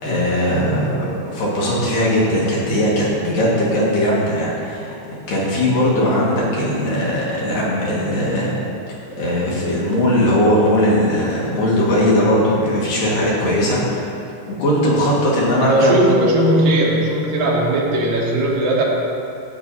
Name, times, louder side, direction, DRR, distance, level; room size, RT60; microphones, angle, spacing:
voice 1, 0.0-5.0 5.3-8.5 9.2-14.1 14.5-16.0, equal, 80° left, -6 dB, 3.6 m, -19 dB
voice 2, 15.6-18.8, right 1 dB, 85° right, -3 dB, 3.0 m, -17 dB
12.5 x 8.1 x 2.8 m, 2.6 s
omnidirectional pair, 3.9 m